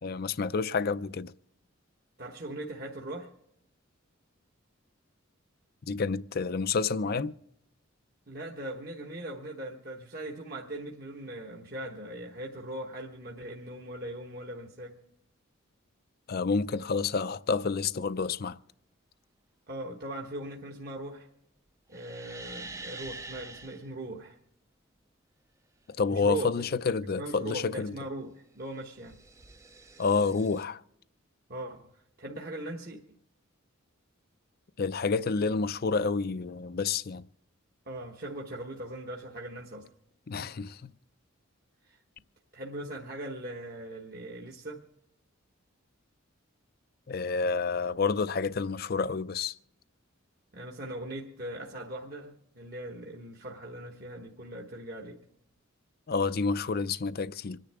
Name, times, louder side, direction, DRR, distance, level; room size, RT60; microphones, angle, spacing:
voice 1, 0.0-1.3 5.9-7.3 16.3-18.6 26.0-27.9 30.0-30.8 34.8-37.2 40.3-40.8 47.1-49.6 56.1-57.6, left 4 dB, 45° left, 0.5 m, -29 dB
voice 2, 2.2-3.3 8.3-15.0 19.7-21.3 21.9-24.4 26.1-29.2 31.5-33.0 37.8-39.9 40.4-40.5 41.8-42.0 42.5-44.9 50.5-55.2, right 1 dB, 45° right, 1.2 m, -40 dB
sound 1, 21.9-23.8 28.6-30.6, right 3 dB, 15° right, 0.5 m, -46 dB
26.5 x 10.5 x 3.5 m
head